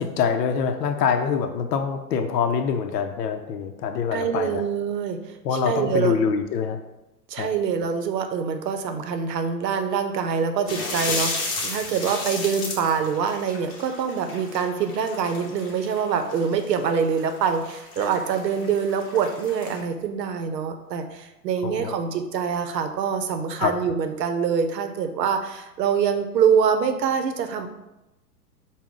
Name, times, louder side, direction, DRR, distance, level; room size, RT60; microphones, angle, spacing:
voice 1, 0.0-4.7 5.4-6.8 7.4-7.5 21.6-22.0 23.6-23.7, left 6 dB, 80° left, 6 dB, 0.6 m, -25 dB
voice 2, 4.1-5.2 5.5-6.2 7.3-27.7, right 6 dB, 80° right, 7 dB, 0.7 m, -25 dB
sound 1, 10.7-19.8, left 3 dB, 30° left, 1.0 m, -33 dB
4.8 x 2.2 x 3.6 m, 0.97 s
hypercardioid pair, 105°, 48 cm